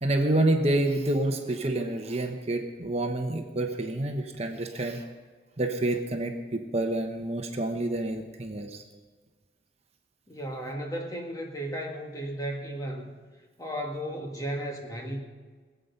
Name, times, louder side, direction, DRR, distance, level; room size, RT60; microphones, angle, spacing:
voice 1, 0.0-5.0 5.6-8.8, right 1 dB, 35° right, 4 dB, 1.1 m, -28 dB
voice 2, 10.3-13.1 13.6-15.2, right 1 dB, 20° left, 1 dB, 1.7 m, -34 dB
20.5 x 8.2 x 5.7 m, 1.5 s
head